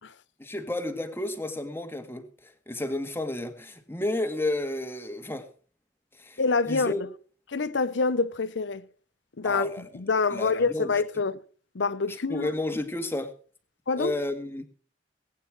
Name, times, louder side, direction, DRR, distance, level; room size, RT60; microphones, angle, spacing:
voice 1, 0.4-5.5 6.2-6.4 6.7-7.0 9.4-9.8 10.3-10.9 12.3-13.3 13.9-14.6, left 1 dB, 15° left, 1.8 m, -31 dB
voice 2, 6.4-7.1 7.5-8.8 9.4-11.4 11.7-12.5 13.9-14.1, left 4 dB, 90° left, 0.8 m, -26 dB
20.0 x 9.4 x 4.8 m
head